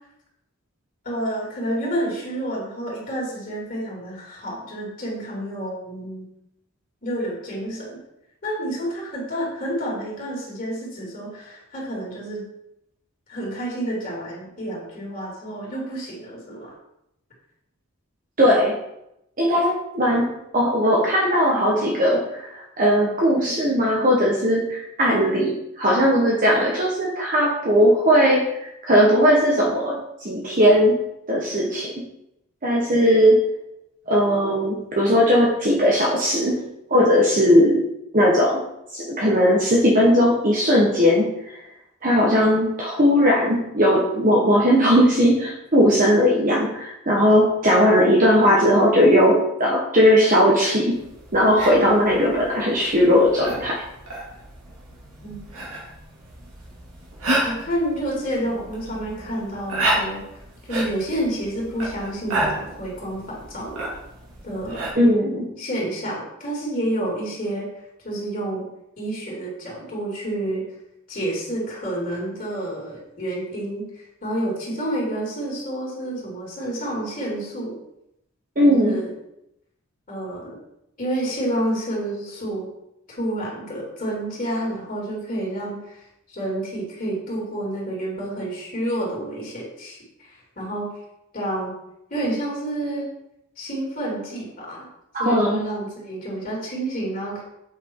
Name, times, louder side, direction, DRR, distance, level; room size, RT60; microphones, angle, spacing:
voice 1, 1.0-6.3 7.0-8.0 8.4-12.5 13.3-16.7 55.2-55.4 57.4-60.2 60.7-63.9 64.4-64.8 65.6-67.7 68.0-68.7 69.0-70.7 71.1-77.8 78.6-79.1 80.1-80.6 81.0-82.7 83.1-90.9 91.3-91.8 92.1-93.0 93.6-94.9 95.2-97.4, right 1 dB, 40° left, -4 dB, 3.1 m, -29 dB
voice 2, 18.4-18.8 19.4-31.0 31.3-32.1 32.6-33.4 34.1-36.6 36.9-37.8 38.1-38.6 38.9-41.6 42.0-51.0 51.3-53.8 64.9-65.5 78.6-79.0 95.1-95.6, equal, 40° right, -2 dB, 1.2 m, -18 dB
sound 1, 50.9-64.9, right 1 dB, 80° right, 2.9 m, -31 dB
8.3 x 6.0 x 4.6 m, 0.83 s
head